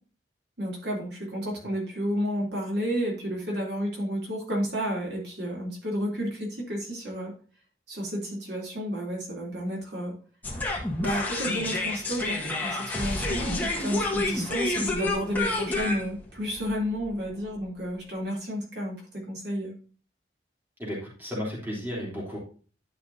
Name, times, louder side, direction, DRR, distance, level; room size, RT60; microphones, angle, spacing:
voice 1, 0.6-7.3 7.9-10.1 11.0-19.7, equal, 65° right, -2 dB, 3.2 m, -31 dB
sound 1, 10.4-17.6, left 2 dB, 10° left, 1.5 m, -29 dB
voice 2, 20.8-22.4, equal, 10° right, -4 dB, 3.3 m, -33 dB
11.5 x 5.9 x 2.7 m, 0.39 s
head